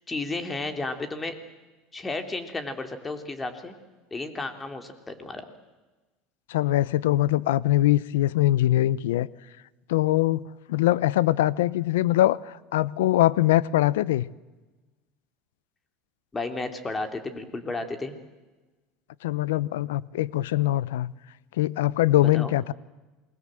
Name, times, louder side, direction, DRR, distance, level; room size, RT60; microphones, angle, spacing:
voice 1, 0.1-1.3 1.9-3.7 4.1-5.4 16.3-18.1 22.2-22.5, left 3 dB, 15° left, 3.2 m, -33 dB
voice 2, 6.5-9.3 9.9-14.3 19.2-21.1 21.6-22.7, left 15 dB, 90° left, 0.7 m, -22 dB
27.5 x 21.0 x 7.8 m
supercardioid pair, 115°, 0 cm